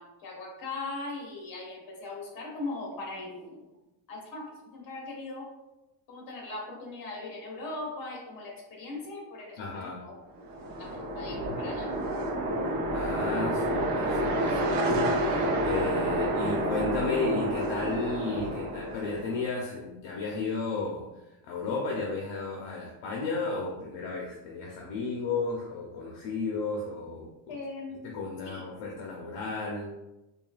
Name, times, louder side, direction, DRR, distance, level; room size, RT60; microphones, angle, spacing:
voice 1, 0.0-3.6 4.1-5.5 6.1-10.1 10.8-11.9 27.5-28.0 28.4-28.6, left 2 dB, 40° left, -1 dB, 1.3 m, -39 dB
voice 2, 9.6-10.0 12.9-21.1 21.4-27.5 28.0-29.9, left 3 dB, 60° left, -3 dB, 0.8 m, -33 dB
sound 1, 10.4-19.4, right 1 dB, 45° right, 0.8 m, -29 dB
5.4 x 2.4 x 2.5 m, 1.0 s
cardioid pair, 150°, 50 cm